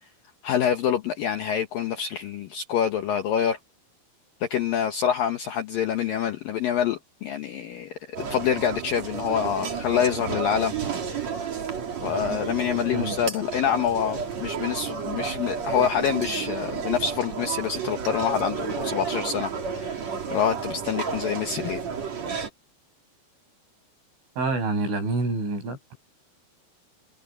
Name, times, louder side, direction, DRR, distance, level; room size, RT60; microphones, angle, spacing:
voice 1, 0.4-3.6 4.4-10.7 12.0-20.0 20.3-21.8, left 8 dB, 75° left, 2.1 m, -26 dB
sound 1, 8.1-22.5, right 6 dB, 40° right, 3.7 m, -31 dB
voice 2, 24.4-26.0, right 3 dB, 75° right, 10.0 m, -27 dB
omnidirectional pair, 5.6 m